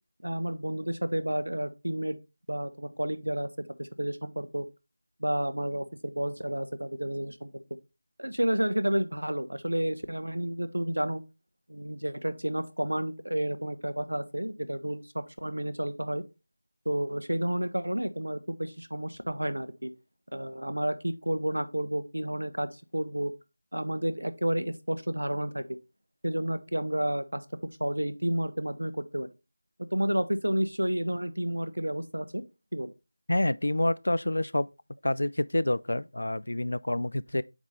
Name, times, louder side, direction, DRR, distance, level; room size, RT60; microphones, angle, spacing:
voice 1, 0.2-2.2 2.5-3.5 3.8-4.6 5.2-7.6 8.2-11.2 11.7-16.2 16.9-19.9 20.3-23.3 23.7-25.6 26.2-27.4 27.8-29.3 29.9-32.4 32.7-32.9, right 1 dB, 75° right, 0.8 m, -31 dB
voice 2, 33.3-34.7 35.0-37.4, left 1 dB, 60° left, 0.3 m, -27 dB
8.1 x 3.6 x 3.2 m
figure-of-eight pair, 170°, 0 cm